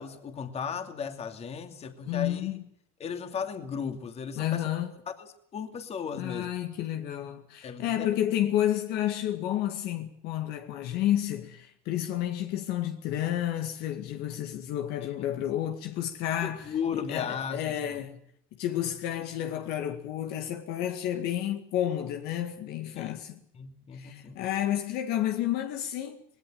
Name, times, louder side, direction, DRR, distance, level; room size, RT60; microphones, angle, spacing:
voice 1, 0.0-2.5 3.0-4.7 5.1-6.5 7.6-8.1 16.4-17.7 23.0-23.1 23.5-24.4, left 6 dB, 35° left, 2.7 m, -36 dB
voice 2, 2.1-2.6 4.4-4.9 6.2-18.2 18.6-23.4 23.9-26.2, left 12 dB, 65° left, 2.0 m, -31 dB
19.5 x 18.0 x 9.1 m
supercardioid pair, 110°, 18 cm